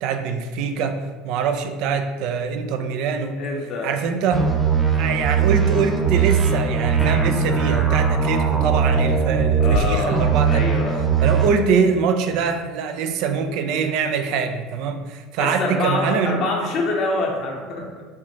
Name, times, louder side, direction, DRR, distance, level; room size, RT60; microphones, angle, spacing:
voice 1, 0.0-3.4 3.8-4.5 5.0-10.7 11.2-16.4, right 6 dB, 60° right, 6 dB, 0.3 m, -23 dB
voice 2, 3.4-3.9 9.6-11.0 15.4-18.0, left 2 dB, 50° left, 0 dB, 0.8 m, -25 dB
sound 1, 4.3-9.8 10.1-11.5, right 6 dB, 15° right, 0.6 m, -20 dB
4.4 x 2.5 x 2.8 m, 1.4 s
hypercardioid pair, 75°, 0 cm